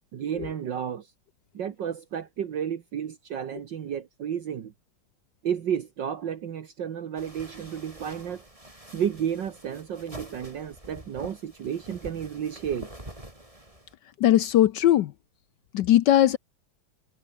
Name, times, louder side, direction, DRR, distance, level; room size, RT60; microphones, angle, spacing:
voice 1, 0.1-1.1 1.5-4.7 5.4-8.4 8.9-12.9, right 8 dB, 60° right, 1.9 m, -32 dB
sound 1, 7.2-13.9, right 1 dB, 15° right, 5.2 m, -46 dB
voice 2, 14.2-15.1 15.7-16.4, left 12 dB, 70° left, 1.2 m, -19 dB
omnidirectional pair, 2.3 m